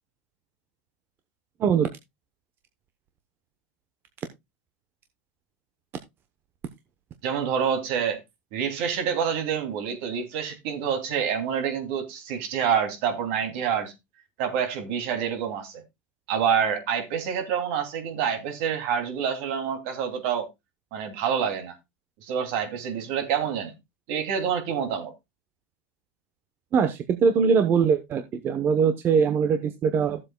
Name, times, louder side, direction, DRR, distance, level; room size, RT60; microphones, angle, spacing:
voice 1, 7.2-8.2 8.5-13.9 14.4-15.8 16.3-20.5 20.9-21.8 22.2-23.7 24.1-25.1, right 7 dB, 60° right, 2.9 m, -27 dB
voice 2, 26.7-30.2, right 6 dB, 35° right, 0.9 m, -22 dB
14.5 x 7.6 x 2.3 m
supercardioid pair, 130°, 7 cm